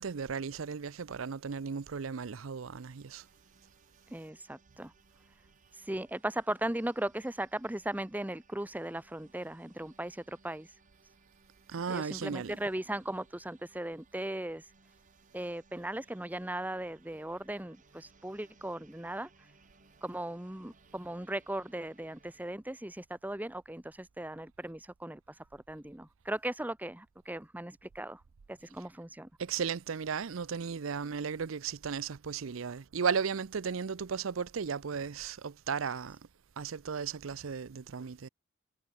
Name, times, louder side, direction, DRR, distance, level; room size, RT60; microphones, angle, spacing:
voice 1, 0.0-3.2 11.7-12.6 29.4-36.2 36.6-38.3, right 6 dB, 75° right, 0.6 m, -35 dB
sound 1, 2.8-22.5, right 3 dB, 40° right, 6.5 m, -65 dB
voice 2, 4.1-4.9 5.7-10.8 11.9-14.7 15.3-19.5 20.0-28.2 28.5-29.3, right 1 dB, 10° right, 0.9 m, -38 dB
head